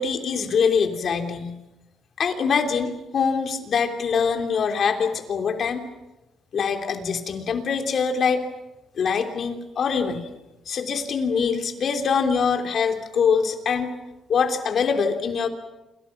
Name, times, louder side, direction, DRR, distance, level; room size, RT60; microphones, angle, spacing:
voice 1, 0.0-1.5 2.2-5.9 6.5-8.4 8.9-10.3 10.7-13.9 14.3-15.5, left 6 dB, 55° left, 6 dB, 3.2 m, -24 dB
29.0 x 27.5 x 6.0 m, 1.0 s
cardioid pair, 90°, 0 cm